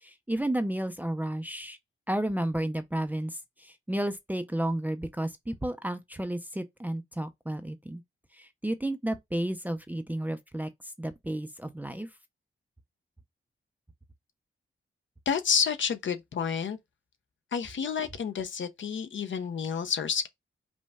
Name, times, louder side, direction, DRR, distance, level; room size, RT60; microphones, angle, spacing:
voice 1, 0.0-1.8 2.1-8.0 8.3-10.7 11.0-12.1, right 1 dB, 10° right, 0.4 m, -32 dB
voice 2, 15.3-16.8 17.5-20.3, left 6 dB, 65° left, 0.6 m, -29 dB
5.2 x 2.1 x 3.4 m
wide cardioid pair, 150°, 21 cm